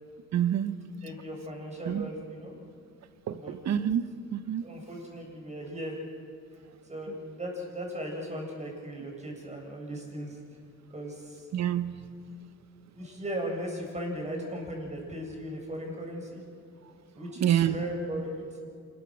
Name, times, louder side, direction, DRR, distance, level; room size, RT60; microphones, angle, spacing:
voice 1, 0.3-0.8 1.9-2.0 3.3-4.6 11.5-11.9 17.4-17.8, right 10 dB, 60° right, 12 dB, 1.1 m, -27 dB
voice 2, 1.0-2.5 3.3-3.5 4.6-6.0 6.8-10.4 10.9-11.5 12.9-16.4 17.1-18.7, equal, 25° right, 0 dB, 7.5 m, -37 dB
27.0 x 21.5 x 6.4 m, 2.2 s
cardioid pair, 90°, 30 cm